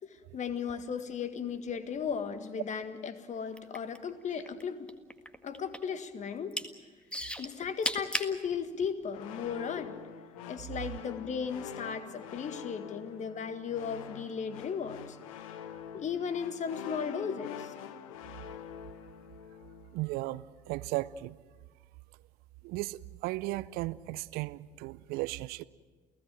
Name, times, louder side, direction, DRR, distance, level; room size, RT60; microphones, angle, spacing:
voice 1, 0.0-4.9 5.4-6.6 7.4-10.0 10.5-15.2 15.9-17.7, left 6 dB, 45° left, 1.8 m, -36 dB
sound 1, 3.5-4.6 4.9-6.0 6.3-6.7 7.1-8.3 9.0-9.1, equal, 5° left, 1.8 m, -34 dB
sound 2, 9.1-20.0, left 9 dB, 75° left, 1.2 m, -45 dB
voice 2, 19.9-21.4 22.6-25.6, right 18 dB, 60° right, 0.6 m, -36 dB
30.0 x 16.5 x 7.6 m
figure-of-eight pair, 50°, 18 cm